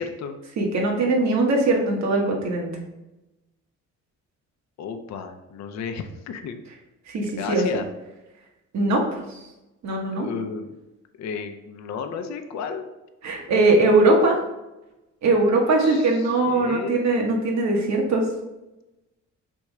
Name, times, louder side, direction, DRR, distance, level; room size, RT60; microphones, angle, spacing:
voice 1, 0.0-0.4 1.4-1.5 4.8-6.6 7.2-7.9 10.1-10.8 11.2-12.9 15.5-17.1, left 6 dB, 65° left, 7 dB, 0.6 m, -33 dB
voice 2, 0.6-2.7 7.1-7.6 8.7-9.0 9.3-9.4 9.8-10.3 13.2-14.4 15.2-18.3, right 2 dB, 65° right, 0 dB, 1.1 m, -20 dB
3.5 x 3.0 x 4.6 m, 1.0 s
cardioid pair, 90°, 30 cm